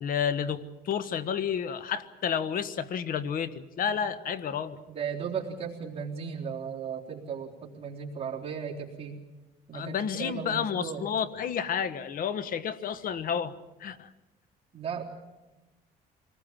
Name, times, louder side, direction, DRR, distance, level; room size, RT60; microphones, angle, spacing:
voice 1, 0.0-4.8 9.7-13.5 13.8-14.1, left 7 dB, 55° left, 13 dB, 1.4 m, -31 dB
voice 2, 4.9-9.2 9.7-11.0 14.7-15.0, right 7 dB, 35° right, -3 dB, 3.8 m, -36 dB
26.5 x 19.5 x 7.5 m, 1.1 s
cardioid pair, 110°, 17 cm